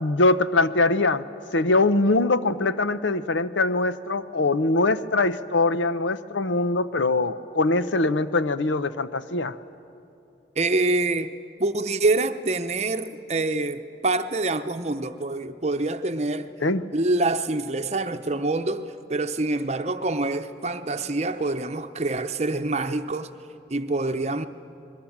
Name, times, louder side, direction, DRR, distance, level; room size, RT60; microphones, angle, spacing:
voice 1, 0.0-1.2 1.5-9.5 16.6-16.8, left 2 dB, 85° left, 0.8 m, -22 dB
voice 2, 10.6-11.3 11.6-16.5 16.9-23.3 23.7-24.5, right 2 dB, 35° right, 0.8 m, -26 dB
29.0 x 21.5 x 7.3 m
head